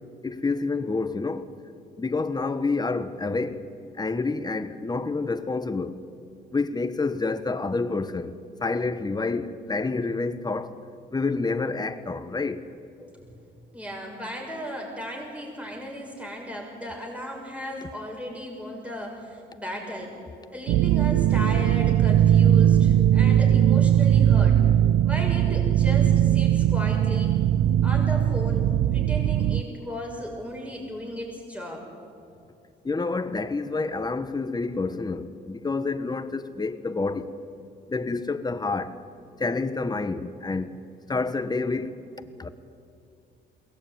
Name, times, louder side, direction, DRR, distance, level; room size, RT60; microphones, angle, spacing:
voice 1, 0.2-1.5 2.0-3.7 3.9-6.0 6.5-8.3 8.6-10.7 11.1-12.6 32.8-37.3 37.9-39.0 39.4-40.7 41.1-42.0 42.4-42.5, left 3 dB, 20° left, 1.3 m, -28 dB
voice 2, 13.7-20.1 20.5-24.6 25.0-27.3 27.8-31.9, equal, 5° right, 6.4 m, -35 dB
sound 1, 20.7-29.6, right 11 dB, 85° right, 0.5 m, -20 dB
22.0 x 18.0 x 9.4 m
cardioid pair, 90°, 20 cm